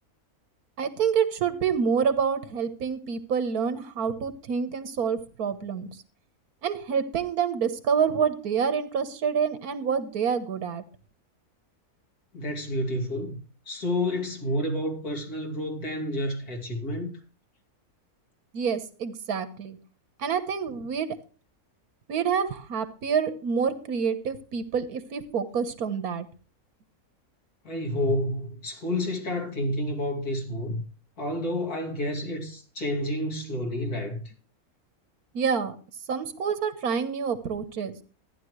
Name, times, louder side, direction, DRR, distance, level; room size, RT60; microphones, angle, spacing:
voice 1, 0.8-5.9 6.6-10.8 18.5-19.8 20.2-21.2 22.1-26.3 35.3-35.7 36.1-38.0, right 6 dB, 85° right, 1.6 m, -27 dB
voice 2, 12.3-13.4 13.7-17.2 27.6-30.8 31.2-34.3, left 1 dB, 85° left, 3.2 m, -30 dB
14.0 x 10.5 x 3.2 m
omnidirectional pair, 1.6 m